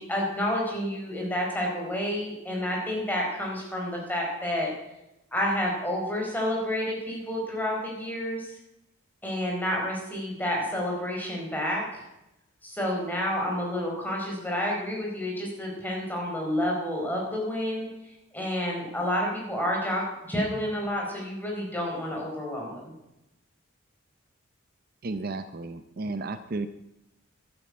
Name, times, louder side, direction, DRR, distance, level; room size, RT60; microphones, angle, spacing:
voice 1, 0.0-4.7 5.3-8.5 9.2-12.0 12.6-22.9, left 1 dB, 10° left, -2 dB, 4.4 m, -30 dB
voice 2, 25.0-26.7, right 3 dB, 45° right, 11 dB, 0.6 m, -33 dB
12.0 x 11.5 x 8.5 m, 0.92 s
head